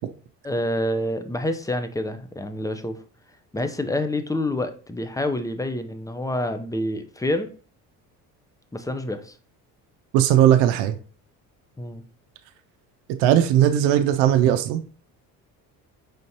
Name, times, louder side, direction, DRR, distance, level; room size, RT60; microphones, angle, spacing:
voice 1, 0.4-3.0 3.5-7.5 8.7-9.3 11.8-12.0, left 1 dB, 10° left, 0.5 m, -27 dB
voice 2, 10.1-11.0 13.2-14.8, right 11 dB, 70° right, 0.6 m, -18 dB
5.1 x 3.6 x 2.8 m
hypercardioid pair, 60°, 46 cm